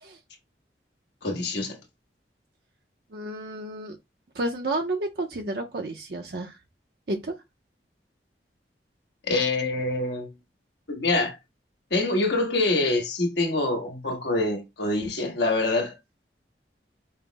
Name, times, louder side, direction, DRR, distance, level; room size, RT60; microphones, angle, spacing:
voice 1, 1.2-1.8 9.3-10.3 10.9-11.4 11.9-15.9, left 2 dB, 80° left, 1.5 m, -25 dB
voice 2, 3.1-4.0 4.3-6.6 7.1-7.3, right 2 dB, 60° right, 0.6 m, -31 dB
5.5 x 2.0 x 3.9 m
head